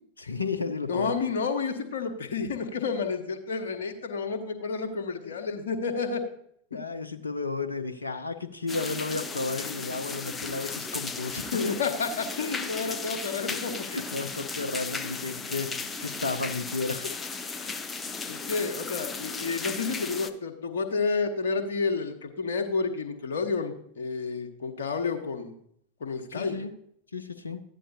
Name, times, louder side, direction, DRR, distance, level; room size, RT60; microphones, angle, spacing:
voice 1, 0.2-1.2 5.2-5.3 6.7-11.6 13.4-13.5 13.9-17.1 17.6-17.7 26.3-26.7 27.1-27.6, left 3 dB, 75° left, 9 dB, 0.7 m, -33 dB
voice 2, 0.9-6.2 11.5-13.8 18.3-25.6 26.0-26.5, left 4 dB, 60° left, 5 dB, 1.4 m, -30 dB
sound 1, 8.7-20.3, left 4 dB, 15° left, 0.7 m, -35 dB
14.5 x 10.0 x 2.8 m, 0.68 s
figure-of-eight pair, 90°, 0 cm